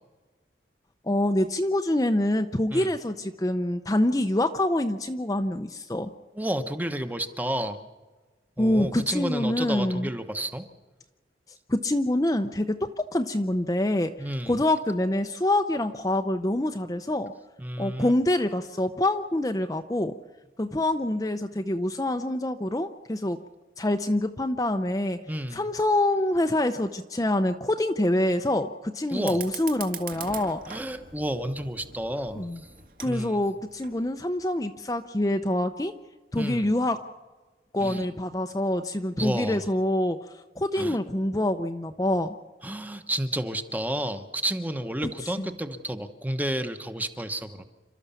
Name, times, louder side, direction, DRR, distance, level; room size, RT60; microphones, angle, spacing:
voice 1, 1.0-6.1 8.6-10.1 11.7-14.1 14.5-17.3 17.8-20.1 20.6-23.4 23.8-25.2 25.5-30.6 32.4-32.6 33.0-35.9 36.3-37.0 37.7-40.2 40.6-42.4 45.4-45.5, left 1 dB, 20° left, 6 dB, 0.6 m, -26 dB
voice 2, 6.4-7.8 8.6-10.6 14.2-14.6 17.6-18.1 25.3-25.7 29.1-29.5 30.7-32.5 33.0-33.4 36.4-36.7 37.8-38.1 39.2-39.6 40.7-41.0 42.6-47.6, right 1 dB, 10° right, 8 dB, 1.0 m, -31 dB
Fire, 29.1-34.1, right 7 dB, 50° right, 2.0 m, -42 dB
28.5 x 13.0 x 7.0 m, 1.3 s
head